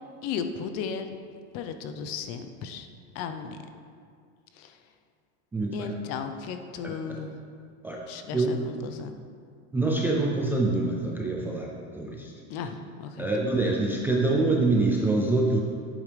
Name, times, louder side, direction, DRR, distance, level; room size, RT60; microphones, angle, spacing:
voice 1, 0.2-1.1 1.5-2.9 3.1-3.6 4.6-4.8 5.7-7.4 8.1-9.2 12.5-13.3, left 6 dB, 45° left, 8 dB, 0.7 m, -35 dB
voice 2, 5.5-5.9 6.8-7.2 7.8-8.0 8.3-8.5 9.7-12.3 13.2-15.6, right 2 dB, 5° right, -2 dB, 0.3 m, -25 dB
8.7 x 8.5 x 3.3 m, 2.2 s
supercardioid pair, 145°, 35 cm